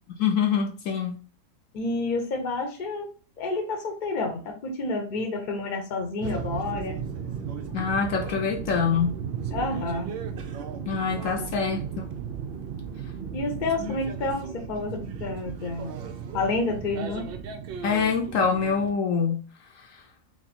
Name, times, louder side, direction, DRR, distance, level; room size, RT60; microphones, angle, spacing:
voice 1, 0.2-1.1 7.7-9.2 10.9-12.0 13.8-13.9 17.8-19.4 19.9-20.0, left 6 dB, 70° left, 1.0 m, -25 dB
voice 2, 1.7-3.1 3.4-7.0 7.5-7.6 9.5-10.1 11.4-11.5 13.3-15.9 16.3-17.3, left 3 dB, 45° left, 0.7 m, -29 dB
sound 1, 6.2-18.9, right 7 dB, 70° right, 0.5 m, -35 dB
3.0 x 2.5 x 4.1 m
omnidirectional pair, 1.5 m